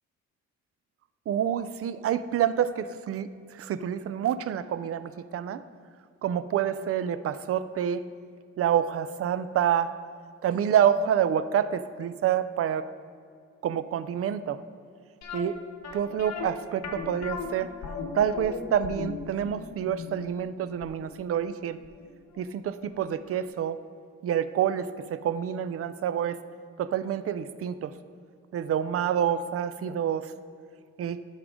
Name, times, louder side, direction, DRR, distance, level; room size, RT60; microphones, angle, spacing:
voice 1, 1.3-5.6 6.2-8.0 8.6-9.9 10.4-12.9 13.6-14.6 15.3-15.6 15.9-17.7 18.1-21.8 22.4-23.8 24.2-26.4 26.8-27.9 28.5-30.3 31.0-31.2, right 9 dB, 50° right, 14 dB, 0.5 m, -27 dB
sound 1, 15.2-22.1 22.3-22.4 23.0-23.1 23.4-23.5, left 5 dB, 60° left, 1.1 m, -37 dB
11.0 x 6.5 x 3.7 m, 2.2 s
cardioid pair, 90°, 30 cm